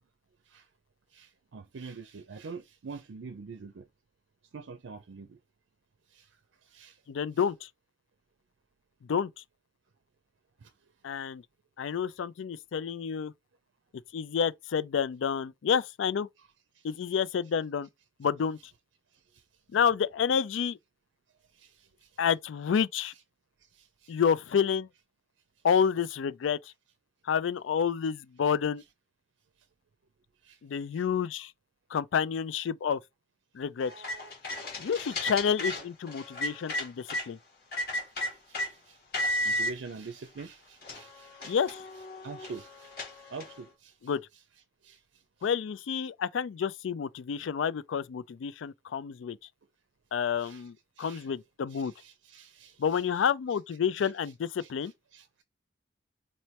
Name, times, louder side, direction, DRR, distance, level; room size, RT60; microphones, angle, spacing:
voice 1, 1.1-3.8 4.5-5.4 6.1-6.3 6.7-6.9 21.6-21.9 23.8-24.1 30.4-30.6 38.5-38.6 38.9-39.0 39.4-41.6 42.2-42.9 43.3-43.9 44.8-45.0 50.4-50.7 51.0-51.3 51.7-53.0 54.0-54.1 54.6-55.4, right 4 dB, 80° right, 0.5 m, -45 dB
voice 2, 7.1-7.7 9.1-9.3 11.0-11.4 11.8-13.3 14.1-16.3 16.8-17.9 18.2-18.6 19.7-20.8 22.2-23.1 24.1-24.9 25.6-26.6 27.3-28.8 30.6-31.5 31.9-33.0 33.5-33.9 34.8-37.4 41.5-41.8 44.0-44.2 45.4-49.4 50.1-51.9 52.8-54.9, left 7 dB, 85° left, 0.4 m, -29 dB
sound 1, 33.8-37.3 37.7-38.7 39.1-39.7 40.4-40.5 40.8-43.6, left 1 dB, 50° left, 1.9 m, -34 dB
4.2 x 3.1 x 2.9 m
head